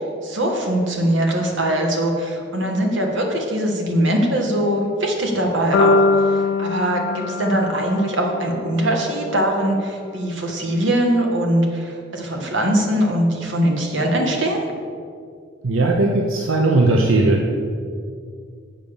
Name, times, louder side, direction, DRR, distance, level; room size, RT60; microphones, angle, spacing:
voice 1, 0.2-6.0 6.3-14.6, right 1 dB, 65° right, 1 dB, 1.4 m, -21 dB
sound 1, 5.7-9.8, left 3 dB, 85° left, 0.4 m, -22 dB
voice 2, 15.6-17.6, right 2 dB, 85° right, 1 dB, 0.7 m, -18 dB
7.6 x 5.1 x 6.9 m, 2.3 s
head